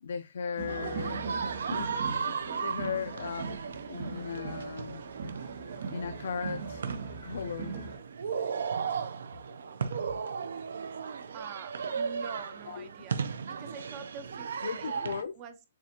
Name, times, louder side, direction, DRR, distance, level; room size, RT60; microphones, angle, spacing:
voice 1, 0.0-5.0 5.9-7.8 9.4-9.6 9.9-10.2 12.7-12.9 14.6-15.3, left 6 dB, 70° left, 0.4 m, -38 dB
sound 1, 0.6-8.0, right 4 dB, 55° right, 2.1 m, -40 dB
sound 2, 0.7-15.2, right 6 dB, 80° right, 0.5 m, -36 dB
voice 2, 11.3-15.6, right 7 dB, 20° right, 0.4 m, -46 dB
7.1 x 2.4 x 2.7 m
hypercardioid pair, 175°, 0 cm